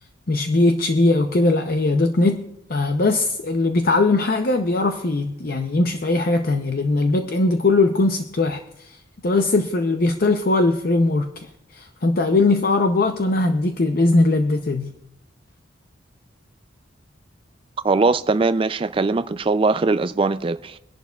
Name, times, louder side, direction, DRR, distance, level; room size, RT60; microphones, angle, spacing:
voice 1, 0.3-14.9, left 2 dB, 45° left, 0.6 m, -20 dB
voice 2, 17.8-20.8, right 3 dB, 25° right, 0.3 m, -21 dB
23.5 x 11.0 x 2.3 m
head